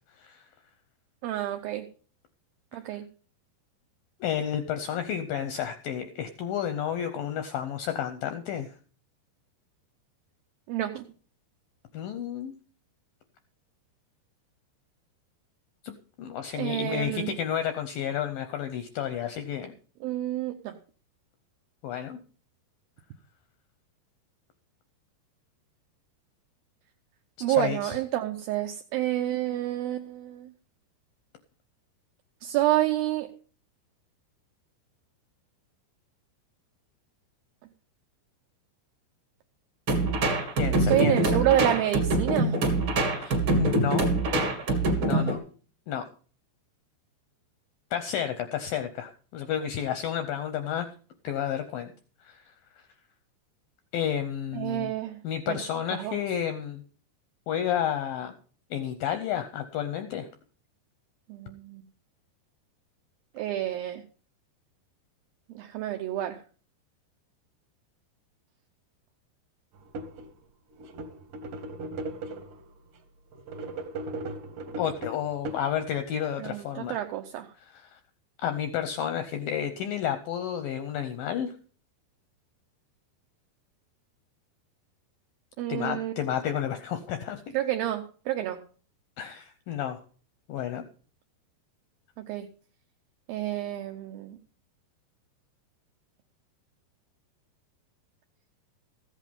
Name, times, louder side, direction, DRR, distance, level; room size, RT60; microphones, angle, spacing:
voice 1, 1.2-1.9 2.7-3.0 10.7-11.0 16.6-17.3 20.0-20.8 27.4-30.5 32.4-33.3 40.9-42.6 45.0-45.3 54.5-55.2 55.5-55.6 55.9-56.2 61.3-61.8 63.4-64.0 65.6-66.4 76.4-77.5 85.6-86.2 87.5-88.6 92.3-92.5 93.3-94.4, right 13 dB, 80° right, 5 dB, 2.2 m, -29 dB
voice 2, 4.2-8.7 11.9-12.5 15.8-15.9 16.2-19.7 21.8-22.2 27.4-28.0 40.6-41.4 43.2-44.1 45.0-45.4 45.9-46.1 47.9-50.9 51.2-51.9 52.2-52.5 53.9-54.9 55.2-56.8 57.5-58.3 58.7-60.3 74.8-77.0 77.6-78.0 78.4-81.5 85.7-87.4 89.2-90.0 90.5-90.8, left 9 dB, 80° left, 9 dB, 2.1 m, -31 dB
sound 1, 39.9-45.4, right 2 dB, 40° right, 2.2 m, -25 dB
sound 2, 69.7-70.3 70.7-72.7 73.3-76.1, right 2 dB, 60° right, 2.6 m, -38 dB
14.5 x 8.3 x 5.3 m, 0.40 s
omnidirectional pair, 5.0 m